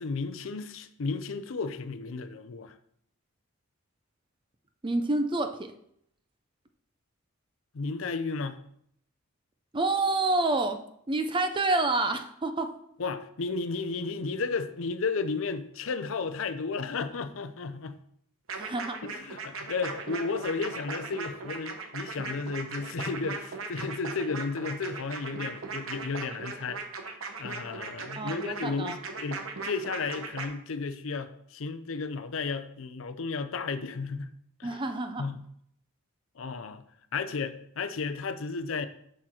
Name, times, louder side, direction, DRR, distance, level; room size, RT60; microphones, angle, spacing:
voice 1, 0.0-2.7 7.7-8.6 13.0-18.0 19.0-34.3 34.6-34.8 35.2-35.4 36.4-36.8 37.1-38.9, left 4 dB, 65° left, 0.5 m, -33 dB
voice 2, 4.8-5.7 9.7-10.8 11.1-12.7 18.6-19.0 28.2-29.0 34.6-35.3, right 2 dB, 25° right, 0.5 m, -28 dB
sound 1, 18.5-30.5, right 4 dB, 70° right, 1.0 m, -38 dB
6.3 x 6.1 x 4.4 m
head